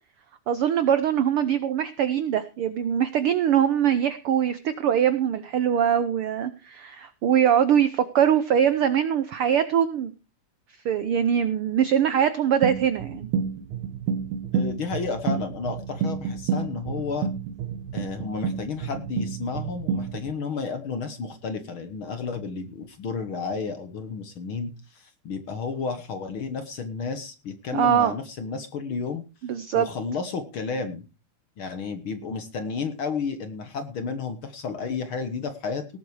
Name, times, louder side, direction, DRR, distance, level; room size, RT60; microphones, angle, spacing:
voice 1, 0.5-10.1 10.8-13.3 27.7-28.2 29.4-29.9, right 9 dB, 90° right, 13 dB, 1.2 m, -22 dB
sound 1, 12.6-20.3, right 6 dB, 70° right, 2.3 m, -30 dB
voice 2, 14.5-17.3 17.9-29.2 29.7-31.0 31.6-35.9, left 5 dB, 55° left, 10 dB, 1.6 m, -32 dB
18.0 x 7.9 x 4.8 m, 0.32 s
omnidirectional pair, 3.6 m